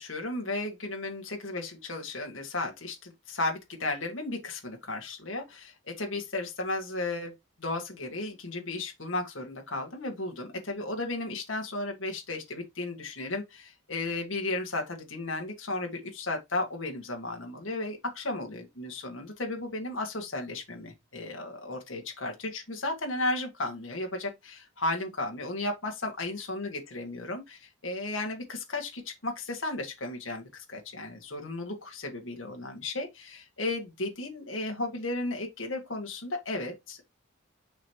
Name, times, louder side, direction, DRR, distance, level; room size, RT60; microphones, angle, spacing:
voice 1, 0.0-7.3 7.6-37.1, left 2 dB, 70° left, 1.9 m, -34 dB
7.2 x 5.0 x 3.0 m
head